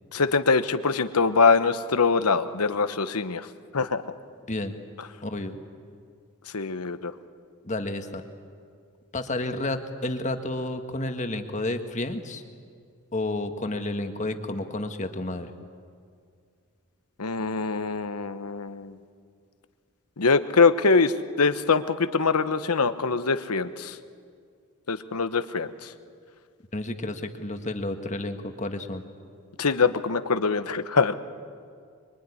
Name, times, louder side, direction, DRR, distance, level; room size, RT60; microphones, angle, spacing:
voice 1, 0.1-3.5 3.7-4.0 6.5-7.1 17.2-18.9 20.2-21.1 21.4-24.0 24.9-25.7 29.6-31.1, left 4 dB, 85° left, 11 dB, 1.1 m, -23 dB
voice 2, 5.2-5.6 7.6-8.2 9.1-12.4 13.1-15.5 26.7-29.0, left 2 dB, 30° left, 7 dB, 1.6 m, -31 dB
24.5 x 23.5 x 9.9 m, 2.2 s
head